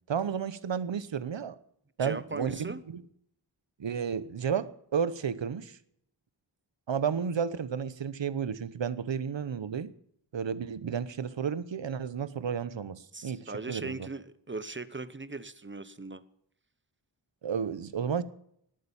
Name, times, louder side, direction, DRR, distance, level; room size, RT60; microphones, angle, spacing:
voice 1, 0.1-1.5 2.0-3.0 3.8-5.8 6.9-9.9 10.3-14.1 17.4-18.2, right 7 dB, 80° right, 16 dB, 1.0 m, -32 dB
voice 2, 2.0-2.8 13.1-16.2, right 3 dB, 25° right, 15 dB, 1.0 m, -39 dB
19.0 x 8.8 x 7.2 m, 0.70 s
wide cardioid pair, 85°, 44 cm